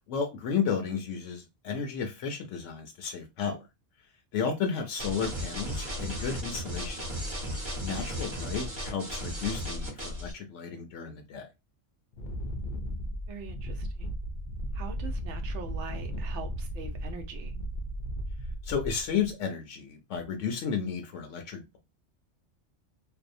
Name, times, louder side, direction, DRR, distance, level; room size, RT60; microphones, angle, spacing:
voice 1, 0.1-3.6 4.3-7.0 7.8-11.5 18.6-21.8, left 6 dB, 85° left, 0.9 m, -33 dB
sound 1, 5.0-10.3, equal, 25° right, 0.9 m, -35 dB
Wind, 12.1-19.3, equal, 60° left, 0.6 m, -35 dB
voice 2, 13.3-14.1 14.7-17.5, right 5 dB, 80° right, 0.9 m, -43 dB
2.6 x 2.0 x 2.5 m
omnidirectional pair, 1.2 m